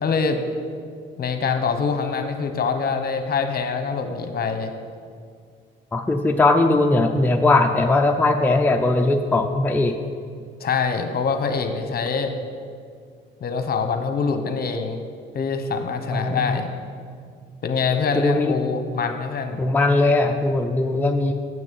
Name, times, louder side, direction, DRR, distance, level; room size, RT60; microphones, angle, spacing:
voice 1, 0.0-0.4 1.2-4.7 10.6-12.3 13.4-15.0 15.3-16.7 17.6-19.6, left 5 dB, 50° left, 7 dB, 1.0 m, -24 dB
voice 2, 5.9-10.0 16.1-16.6 18.1-18.6 19.6-21.3, left 2 dB, 10° left, 4 dB, 0.5 m, -19 dB
7.6 x 6.2 x 7.6 m, 2.1 s
cardioid pair, 90°, 20 cm